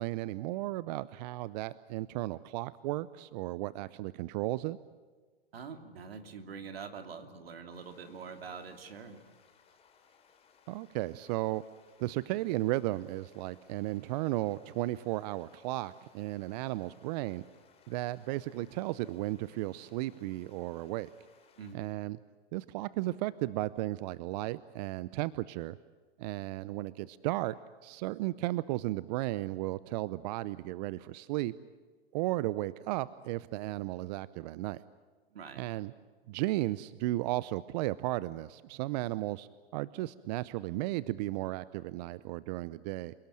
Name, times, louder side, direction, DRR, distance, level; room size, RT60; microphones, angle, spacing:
voice 1, 0.0-4.8 10.7-11.6 12.0-17.4 17.9-21.1 21.7-22.2 22.5-25.8 26.2-27.6 27.8-31.5 32.1-34.8 35.6-35.9 36.3-39.5 39.7-43.1, right 17 dB, 45° right, 18 dB, 0.7 m, -34 dB
voice 2, 5.5-9.2 21.6-21.8 35.3-35.6, right 6 dB, 80° right, 7 dB, 3.0 m, -45 dB
sound 1, 7.7-21.7, left 6 dB, 20° left, 3.2 m, -65 dB
28.5 x 18.0 x 9.0 m, 1.4 s
hypercardioid pair, 120°, 30 cm